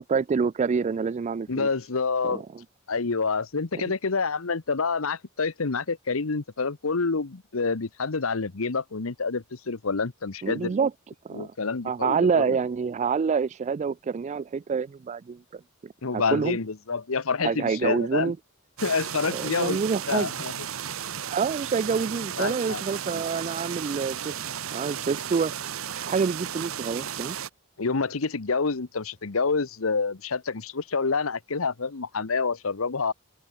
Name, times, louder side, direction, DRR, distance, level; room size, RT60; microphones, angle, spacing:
voice 1, 0.0-1.7 2.2-2.6 3.7-3.9 10.4-10.9 11.2-11.5 11.8-16.6 17.4-18.4 19.3-20.3 21.3-24.4 24.7-25.5 26.0-27.4, right 5 dB, 35° right, 0.3 m, -27 dB
voice 2, 1.5-2.4 2.9-10.7 11.3-12.6 16.0-18.3 18.8-19.8 20.1-20.5 22.4-22.8 23.1-23.2 27.8-33.1, left 4 dB, 85° left, 1.0 m, -28 dB
sound 1, 18.8-27.5, right 9 dB, 85° right, 1.0 m, -34 dB
open air
head